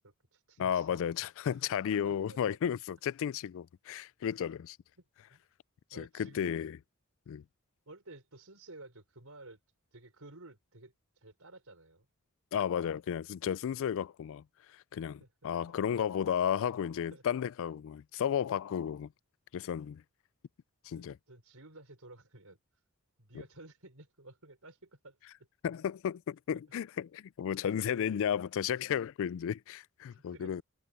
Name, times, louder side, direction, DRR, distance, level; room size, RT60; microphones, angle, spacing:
voice 1, 0.0-1.0 1.5-1.6 2.0-2.4 5.0-5.5 5.9-6.7 7.9-9.6 9.9-12.1 15.2-15.5 17.1-17.2 20.9-22.6 23.2-25.2 26.5-26.6 27.9-28.0 30.1-30.6, right 2 dB, 70° right, 5.8 m, -53 dB
voice 2, 0.6-4.8 6.0-6.8 7.3-7.4 12.5-14.4 14.9-19.1 19.5-20.0 20.8-21.2 25.6-30.6, left 8 dB, 60° left, 0.3 m, -33 dB
head